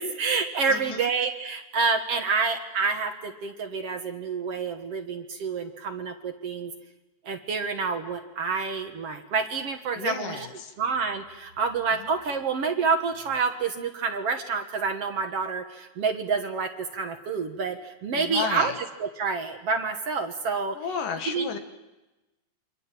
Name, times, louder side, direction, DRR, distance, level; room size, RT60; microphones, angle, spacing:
voice 1, 0.0-6.7 7.2-10.5 10.8-20.8 21.3-21.6, right 4 dB, 55° right, 6 dB, 2.1 m, -28 dB
voice 2, 0.7-1.1 10.0-10.7 18.1-18.7 20.8-21.6, left 6 dB, 80° left, 6 dB, 3.5 m, -32 dB
28.0 x 25.5 x 7.6 m, 1.1 s
omnidirectional pair, 3.8 m